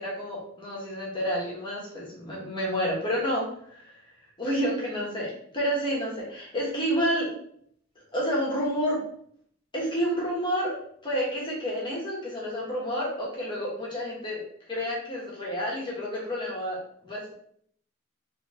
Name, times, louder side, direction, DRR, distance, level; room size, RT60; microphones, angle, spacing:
voice 1, 0.0-4.0 4.4-7.3 8.1-9.0 9.7-10.7 11.0-14.4 14.7-17.3, equal, 25° left, -4 dB, 1.6 m, -29 dB
3.7 x 3.5 x 3.5 m, 0.65 s
head